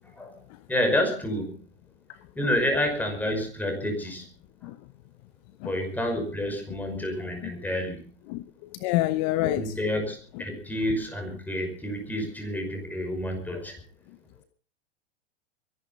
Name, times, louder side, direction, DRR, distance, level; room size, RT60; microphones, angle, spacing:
voice 1, 0.7-1.5 2.4-4.2 5.6-8.0 9.4-13.7, left 1 dB, 5° left, 4 dB, 5.7 m, -29 dB
voice 2, 8.8-9.7, left 17 dB, 40° left, 14 dB, 0.9 m, -26 dB
23.5 x 11.0 x 5.5 m, 0.42 s
hypercardioid pair, 130°, 33 cm